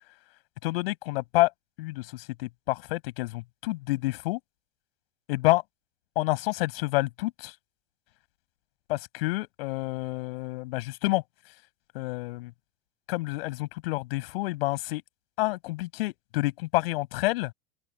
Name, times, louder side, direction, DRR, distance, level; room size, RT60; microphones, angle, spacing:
voice 1, 0.6-1.5 1.8-4.4 5.3-5.6 6.2-7.6 8.9-11.2 11.9-12.5 13.1-15.0 15.4-17.5, left 21 dB, 70° left, 7.1 m, -28 dB
open air
hypercardioid pair, 90°, 31 cm